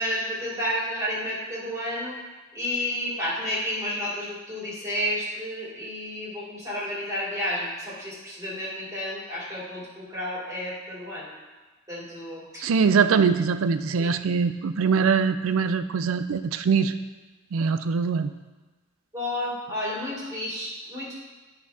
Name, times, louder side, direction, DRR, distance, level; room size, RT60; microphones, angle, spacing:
voice 1, 0.0-2.2 2.5-11.3 11.9-12.6 14.0-14.1 19.1-21.2, left 1 dB, 15° right, -8 dB, 2.4 m, -31 dB
voice 2, 12.6-16.9 17.5-18.3, right 5 dB, 75° right, 11 dB, 0.4 m, -22 dB
12.5 x 4.2 x 2.8 m, 1.2 s
head